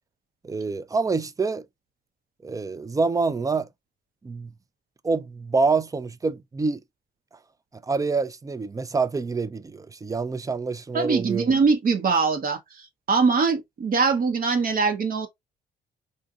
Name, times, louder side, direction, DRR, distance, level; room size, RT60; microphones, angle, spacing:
voice 1, 0.4-1.6 2.4-3.7 4.2-4.5 5.0-6.8 7.8-11.5, right 4 dB, 15° right, 0.3 m, -26 dB
voice 2, 10.9-12.8 13.1-15.3, right 4 dB, 45° right, 0.7 m, -22 dB
3.9 x 2.5 x 2.3 m
cardioid pair, 90°, 20 cm